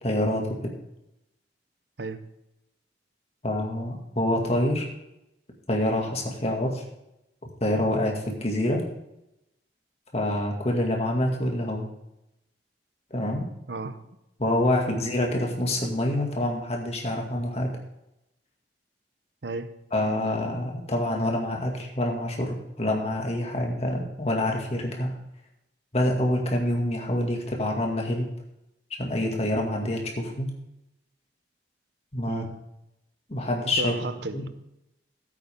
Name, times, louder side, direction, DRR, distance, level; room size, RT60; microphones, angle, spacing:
voice 1, 0.0-0.7 3.4-4.9 5.7-6.8 7.6-8.8 10.1-11.9 13.1-13.5 14.4-17.7 19.9-25.1 25.9-28.3 29.0-30.5 32.1-32.5 33.3-33.9 34.3-34.4, left 1 dB, 35° left, 2.2 m, -26 dB
voice 2, 2.0-2.3 13.7-14.1 14.6-14.8 19.4-19.8 32.3-32.6 33.8-34.5, right 3 dB, 70° right, 0.8 m, -34 dB
14.5 x 8.4 x 3.7 m
head